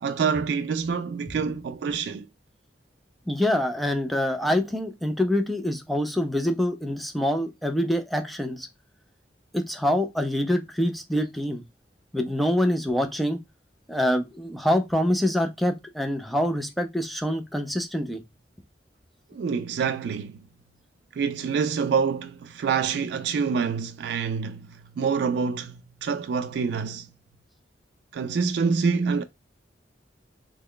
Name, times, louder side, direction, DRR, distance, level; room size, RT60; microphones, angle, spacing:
voice 1, 0.0-2.3 19.3-20.5 21.1-27.1 28.1-29.2, right 5 dB, 70° right, 0.3 m, -26 dB
voice 2, 3.3-8.7 9.5-11.6 12.1-13.4 13.9-18.2, left 1 dB, ahead, 0.4 m, -25 dB
3.0 x 2.3 x 3.7 m
head